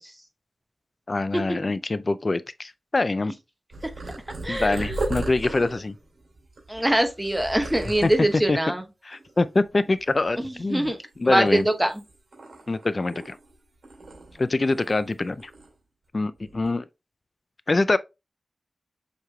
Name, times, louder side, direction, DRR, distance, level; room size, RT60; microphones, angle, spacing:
voice 1, 1.1-3.3 4.5-6.0 8.0-8.6 9.1-10.9 11.2-11.7 12.7-13.4 14.4-15.5 16.1-16.9 17.7-18.0, left 2 dB, 35° left, 0.3 m, -24 dB
Purr, 3.7-8.5 9.1-9.6 9.8-11.1 11.5-13.5 13.8-15.1 15.4-15.7 16.4-16.7, right 2 dB, 70° right, 2.3 m, -36 dB
voice 2, 4.4-5.0 6.7-8.8 10.4-11.0 11.2-11.9, right 1 dB, 5° right, 0.8 m, -23 dB
7.2 x 3.2 x 2.2 m
wide cardioid pair, 115°, 0 cm